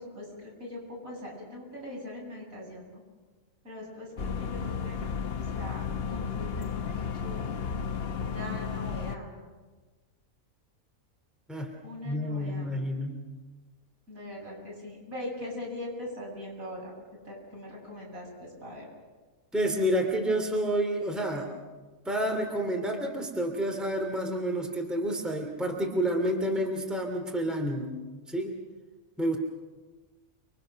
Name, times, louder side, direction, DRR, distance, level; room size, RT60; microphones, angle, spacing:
voice 1, 0.0-3.0 3.6-5.2 5.5-7.4 8.2-9.4 11.8-12.8 14.1-16.9 17.3-18.9, left 1 dB, 70° right, -3 dB, 8.6 m, -41 dB
sound 1, 4.2-9.2, left 6 dB, 45° left, 1.1 m, -33 dB
voice 2, 12.0-13.2 19.5-21.5 22.0-27.9 28.3-28.5 29.2-29.4, right 1 dB, ahead, 2 dB, 2.8 m, -29 dB
30.0 x 23.0 x 6.5 m, 1.3 s
omnidirectional pair, 1.5 m